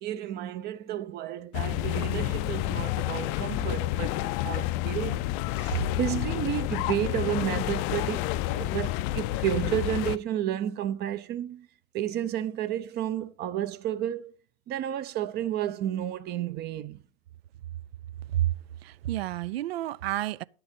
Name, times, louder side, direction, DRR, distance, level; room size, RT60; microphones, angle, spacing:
voice 1, 0.0-5.3 5.6-11.7 11.9-14.3 14.7-17.0, right 11 dB, 35° right, 0.6 m, -31 dB
sound 1, 1.5-10.2, left 15 dB, 40° left, 0.5 m, -29 dB
voice 2, 18.8-20.4, right 14 dB, 75° right, 0.5 m, -29 dB
10.5 x 6.9 x 5.1 m
hypercardioid pair, 110°, 31 cm